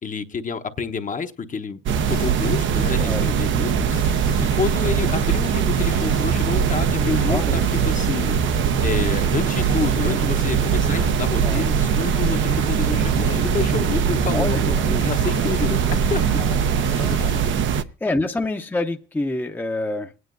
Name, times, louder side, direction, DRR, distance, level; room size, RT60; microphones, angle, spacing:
voice 1, 0.0-1.8 2.1-4.0 4.5-8.3 8.8-16.4, left 5 dB, 40° left, 1.0 m, -28 dB
sound 1, 1.9-17.8, right 7 dB, 75° right, 0.7 m, -21 dB
sound 2, 2.1-3.2 3.7-17.5, left 6 dB, 90° left, 1.0 m, -37 dB
voice 2, 14.3-15.0 17.0-17.2 17.6-17.7 18.0-20.1, left 2 dB, 10° left, 0.7 m, -27 dB
27.0 x 9.5 x 2.6 m
cardioid pair, 90°, 20 cm